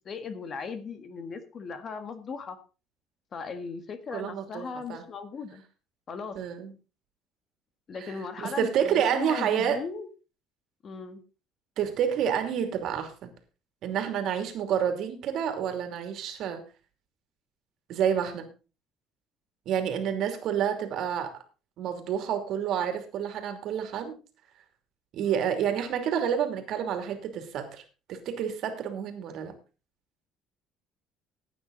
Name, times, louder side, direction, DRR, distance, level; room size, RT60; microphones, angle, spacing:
voice 1, 0.1-2.6 3.3-5.6 6.1-6.4 7.9-10.1 10.8-11.2 25.2-25.5, left 5 dB, 35° left, 10 dB, 1.6 m, -38 dB
voice 2, 4.1-5.0 6.3-6.7 8.0-9.8 11.8-13.3 13.8-16.6 17.9-18.5 19.7-21.3 21.8-24.1 25.1-27.8 28.1-29.5, right 8 dB, 60° right, 7 dB, 2.7 m, -29 dB
15.5 x 8.9 x 4.0 m, 0.33 s
cardioid pair, 140°, 0 cm